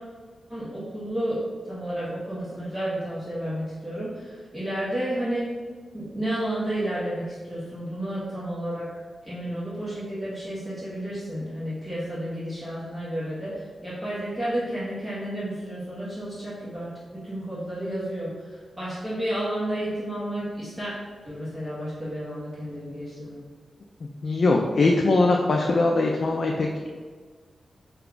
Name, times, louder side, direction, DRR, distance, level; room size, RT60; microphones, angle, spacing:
voice 1, 0.5-1.4 1.7-5.5 5.9-8.9 9.2-20.9 21.2-23.4, right 1 dB, 15° right, -11 dB, 1.1 m, -31 dB
voice 2, 24.2-26.9, left 2 dB, 50° left, 1 dB, 0.3 m, -21 dB
4.8 x 2.3 x 3.7 m, 1.5 s
wide cardioid pair, 150°, 0 cm